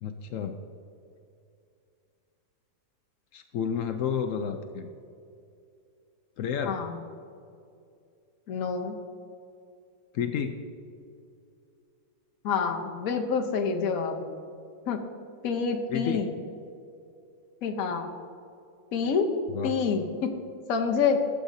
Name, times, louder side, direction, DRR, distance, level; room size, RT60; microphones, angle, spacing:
voice 1, 0.0-0.6 3.3-4.9 6.4-6.7 10.1-10.6 15.9-16.2 19.5-19.7, left 7 dB, 85° left, 6 dB, 0.7 m, -30 dB
voice 2, 6.6-7.0 8.5-8.9 12.4-14.2 14.9-15.0 15.4-16.3 17.6-18.1 18.9-19.3 19.6-20.3 20.7-21.2, left 5 dB, 55° left, 3 dB, 1.2 m, -27 dB
16.5 x 7.8 x 2.7 m, 2.6 s
omnidirectional pair, 2.0 m